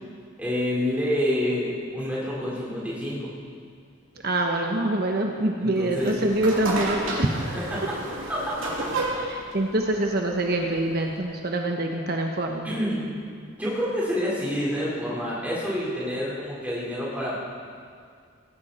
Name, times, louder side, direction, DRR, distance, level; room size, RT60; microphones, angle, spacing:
voice 1, 0.4-3.3 5.6-6.2 7.5-8.0 8.3-8.5 12.6-13.1 13.6-17.4, equal, 5° right, -7 dB, 4.5 m, -28 dB
voice 2, 4.2-7.6 9.3-12.7, right 1 dB, 45° right, 2 dB, 1.1 m, -25 dB
sound 1, 5.9-11.2, right 2 dB, 70° right, 2.8 m, -32 dB
18.0 x 16.5 x 4.4 m, 2.2 s
head